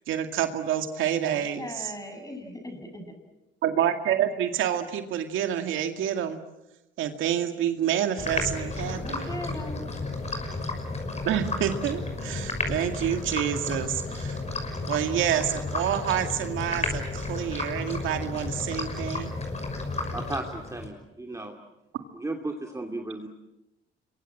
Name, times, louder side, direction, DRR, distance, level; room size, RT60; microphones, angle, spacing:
voice 1, 0.1-1.9 3.6-6.4 7.0-9.3 11.3-14.4 14.9-19.3, right 10 dB, 85° right, 6 dB, 2.2 m, -28 dB
voice 2, 1.2-3.1 8.8-9.9, left 1 dB, 15° left, 5 dB, 7.6 m, -39 dB
sound 1, 8.2-20.9, left 3 dB, 35° left, 6.3 m, -32 dB
voice 3, 20.1-21.5 22.1-23.3, right 2 dB, 15° right, 2 dB, 2.6 m, -35 dB
27.5 x 23.5 x 7.6 m, 0.93 s
cardioid pair, 90°, 20 cm